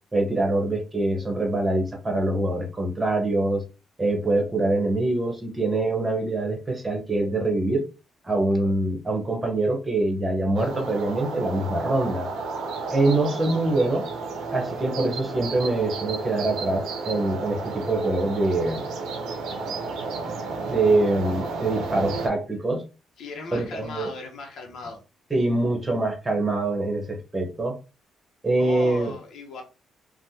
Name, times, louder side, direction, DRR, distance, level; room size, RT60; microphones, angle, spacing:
voice 1, 0.1-3.6 4.0-7.8 8.2-12.3 12.9-14.1 14.5-18.8 20.7-22.8 23.5-24.1 25.3-27.7 28.4-29.1, right 2 dB, 20° right, 2 dB, 1.1 m, -24 dB
sound 1, 10.5-22.3, right 4 dB, 80° right, 0.6 m, -32 dB
voice 2, 23.2-25.0 28.6-29.6, left 3 dB, 65° left, 1 dB, 0.8 m, -37 dB
3.3 x 2.2 x 2.8 m, 0.32 s
cardioid pair, 90°, 0 cm